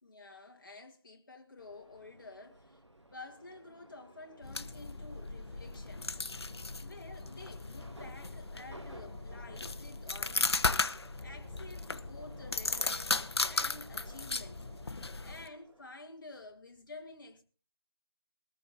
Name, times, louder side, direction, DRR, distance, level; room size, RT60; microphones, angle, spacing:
voice 1, 0.0-2.8 3.1-6.1 6.5-10.9 11.2-14.7 15.2-17.4, left 3 dB, 45° left, 2.0 m, -51 dB
Subway metro underground, 1.6-15.9, right 1 dB, 85° right, 3.7 m, -56 dB
sound 1, 4.4-15.5, left 3 dB, 65° left, 0.8 m, -36 dB
21.5 x 14.0 x 2.9 m
figure-of-eight pair, 160°, 15 cm